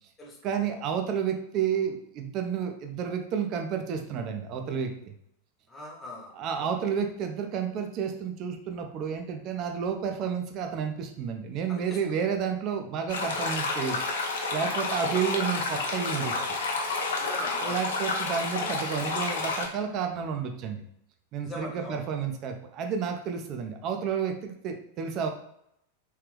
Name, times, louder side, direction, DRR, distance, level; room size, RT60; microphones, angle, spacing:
voice 1, 0.4-5.1 6.4-14.0 14.5-16.3 17.6-20.8 21.3-25.3, right 7 dB, 35° right, 5 dB, 0.5 m, -31 dB
voice 2, 5.7-6.7 11.7-12.0 15.0-15.2 17.2-17.8 21.4-22.0, left 2 dB, 15° left, -2 dB, 1.0 m, -41 dB
sound 1, 13.1-19.7, left 3 dB, 60° left, 0.7 m, -30 dB
3.3 x 3.2 x 3.2 m, 0.76 s
figure-of-eight pair, 90°, 0 cm